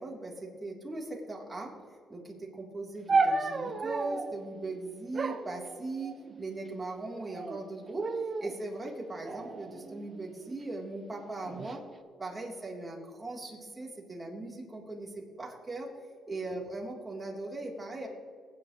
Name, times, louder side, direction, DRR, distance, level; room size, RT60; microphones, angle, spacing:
voice 1, 0.0-1.7 2.1-8.1 8.4-11.8 12.2-15.9 16.3-18.1, right 2 dB, 20° right, -2 dB, 3.4 m, -39 dB
sound 1, 3.1-4.3 5.1-6.4 7.1-7.6 8.0-8.6 9.2-10.5 11.3-11.8, right 3 dB, 40° right, 0.9 m, -32 dB
21.0 x 10.0 x 3.2 m, 2.1 s
cardioid pair, 90°, 0 cm